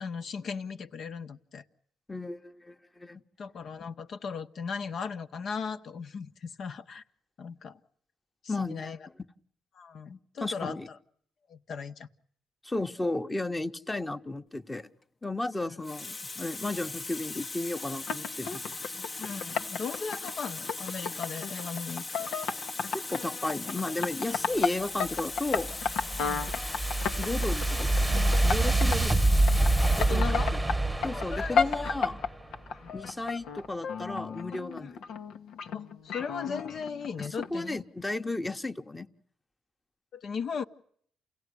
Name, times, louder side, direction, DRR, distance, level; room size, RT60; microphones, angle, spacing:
voice 1, 0.0-1.6 3.4-7.0 7.4-7.8 8.4-9.0 9.7-10.8 11.5-12.1 19.2-22.3 26.2-26.5 30.0-30.5 31.1-31.6 32.7-33.0 35.7-37.8 40.1-40.6, left 5 dB, 60° left, 9 dB, 1.3 m, -37 dB
voice 2, 2.1-3.2 8.5-9.0 10.4-10.9 12.6-14.9 15.2-19.1 22.9-25.7 27.2-29.1 30.0-30.6 31.0-32.2 32.9-35.0 37.2-39.1, left 2 dB, 15° left, 7 dB, 1.2 m, -34 dB
Water tap faucet, 15.0-15.3 15.8-30.3 31.2-31.4, left 3 dB, 40° left, 1.1 m, -39 dB
sound 1, 17.9-29.1 29.4-30.7 31.0-37.5, left 6 dB, 80° left, 1.3 m, -33 dB
sound 2, 25.1-32.3, right 2 dB, 10° right, 1.0 m, -26 dB
29.0 x 17.0 x 9.9 m, 0.63 s
cardioid pair, 90°, 0 cm